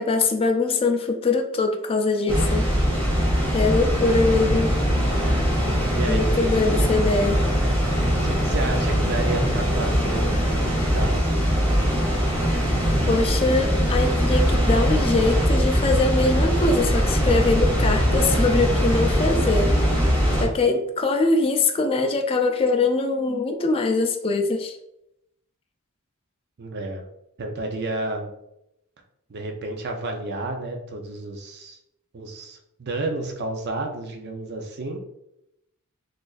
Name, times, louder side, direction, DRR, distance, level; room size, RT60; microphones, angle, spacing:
voice 1, 0.0-2.7 3.5-4.7 6.1-7.4 13.1-19.9 20.4-24.8, left 3 dB, 25° left, 4 dB, 0.3 m, -22 dB
Water, 2.3-20.4, equal, 25° right, 1.3 m, -21 dB
voice 2, 5.9-6.4 6.7-6.9 8.2-11.3 26.6-27.0 27.4-28.3 29.3-31.8 32.1-35.0, right 2 dB, 50° right, 3 dB, 0.5 m, -31 dB
3.9 x 2.5 x 2.4 m, 0.82 s
head